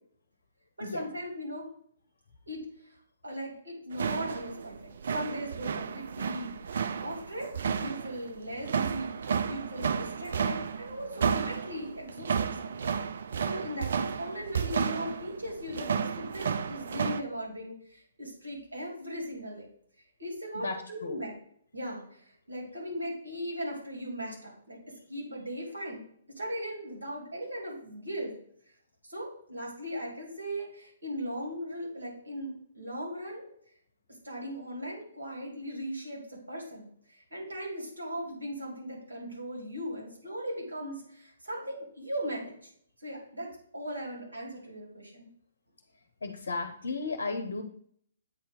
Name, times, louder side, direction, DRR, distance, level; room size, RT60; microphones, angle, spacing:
voice 1, 0.8-1.7 2.5-3.0 3.2-12.9 13.4-19.7 20.2-21.3 21.7-24.8 25.1-26.0 26.4-28.4 29.0-33.4 34.2-42.7 43.0-45.3, equal, 80° right, -3 dB, 2.5 m, -38 dB
sound 1, 3.9-17.2, right 6 dB, 60° right, 0.3 m, -32 dB
voice 2, 20.5-21.2 46.2-47.6, left 3 dB, 70° left, 6 dB, 0.7 m, -34 dB
8.2 x 2.8 x 5.2 m, 0.64 s
figure-of-eight pair, 130°, 0 cm